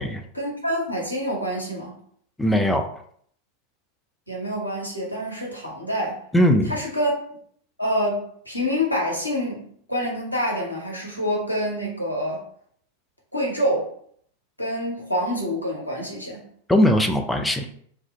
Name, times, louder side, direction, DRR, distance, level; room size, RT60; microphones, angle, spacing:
voice 1, 0.3-1.9 4.3-6.2 6.7-7.2 7.8-12.4 13.3-13.9 14.6-16.4, equal, 85° left, -3 dB, 0.8 m, -26 dB
voice 2, 2.4-2.9 6.3-6.8 16.7-17.7, equal, 5° left, 4 dB, 0.4 m, -19 dB
2.4 x 2.1 x 3.8 m, 0.62 s
figure-of-eight pair, 90°, 0 cm